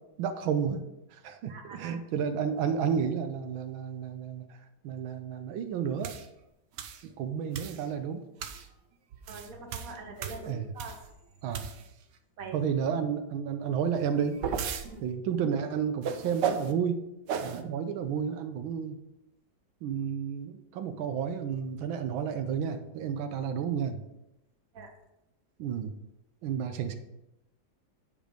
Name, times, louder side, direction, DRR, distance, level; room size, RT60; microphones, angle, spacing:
voice 1, 0.2-0.8 1.1-4.5 4.8-6.1 7.2-8.2 10.5-10.7 11.4-11.7 12.5-14.4 15.0-17.0 17.4-19.0 19.8-24.0 25.6-25.9 26.4-27.0, right 7 dB, 85° right, 7 dB, 1.5 m, -31 dB
voice 2, 1.5-1.9 7.0-7.1 9.3-11.0 12.4-12.7 14.8-15.1 24.7-24.9, right 3 dB, 50° right, 3 dB, 1.6 m, -43 dB
sound 1, 6.0-6.3 6.8-7.0 7.5-7.9 8.4-8.7 9.1-11.1 11.5-12.0 13.9-14.9 16.0-16.7 17.3-17.6, right 7 dB, 70° right, 1.2 m, -34 dB
9.2 x 5.0 x 5.1 m, 0.89 s
omnidirectional pair, 2.1 m